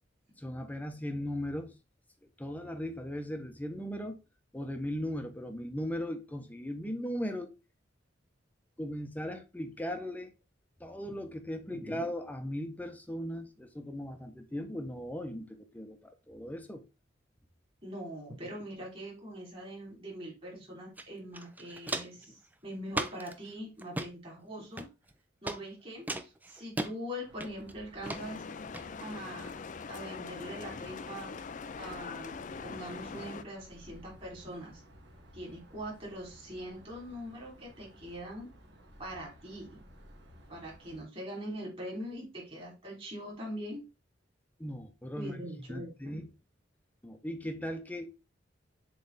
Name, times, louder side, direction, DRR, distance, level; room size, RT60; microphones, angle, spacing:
voice 1, 0.4-1.7 2.4-4.2 4.5-7.5 8.8-10.3 10.8-16.8 44.6-45.4 45.7-46.3 47.0-48.1, equal, 10° left, 0.8 m, -38 dB
voice 2, 17.8-24.9 25.4-28.4 29.0-29.6 29.9-31.3 31.8-32.4 32.6-34.8 35.3-38.5 39.0-39.8 40.5-43.8 45.1-46.2, equal, 30° right, 3.2 m, -42 dB
Walk footsteps, 21.0-21.1 21.3-22.2 22.9-23.3 23.8-24.1 24.8-25.1 25.5-25.6 26.1-26.9 27.4-27.7 28.1-28.2 28.7-28.8, right 2 dB, 10° right, 0.5 m, -36 dB
sound 1, 27.2-41.0, equal, 65° right, 1.6 m, -56 dB
sound 2, 28.0-33.4, left 5 dB, 40° left, 0.4 m, -42 dB
7.1 x 3.3 x 4.0 m
head